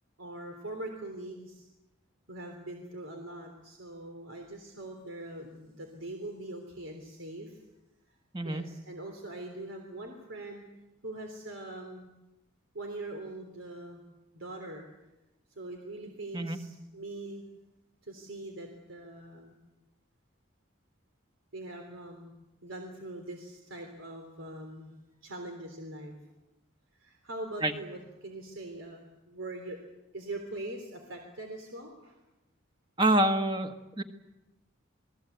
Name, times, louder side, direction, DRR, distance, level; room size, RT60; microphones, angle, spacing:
voice 1, 0.2-1.7 2.3-7.6 8.1-8.2 8.4-10.6 11.0-12.1 12.7-14.0 14.3-14.8 15.5-17.4 18.0-19.6 21.5-22.3 22.6-24.9 25.2-26.1 26.9-29.8 30.1-32.2, right 1 dB, 80° right, 3 dB, 3.4 m, -42 dB
voice 2, 8.3-8.6 16.3-16.6 27.6-27.7 33.0-34.0, right 1 dB, 25° right, 6 dB, 1.6 m, -26 dB
28.0 x 19.5 x 8.2 m, 0.99 s
head